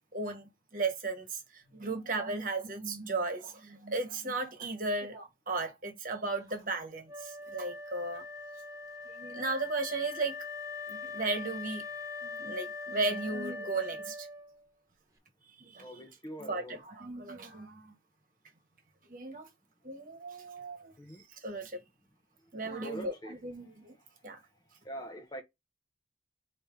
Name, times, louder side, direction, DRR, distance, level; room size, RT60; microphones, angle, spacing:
voice 1, 0.1-8.3 9.0-10.4 10.9-11.8 12.2-14.3 15.6-16.0 16.4-17.9 19.1-19.5 19.8-21.8 22.5-24.0 24.2-24.4, right 3 dB, 50° right, 1.2 m, -36 dB
Wind instrument woodwind instrument, 7.1-14.6, left 4 dB, 20° right, 0.8 m, -42 dB
voice 2, 15.8-16.8 21.0-21.2 22.8-23.3 24.8-25.4, equal, 20° left, 0.7 m, -43 dB
4.4 x 2.8 x 3.6 m
head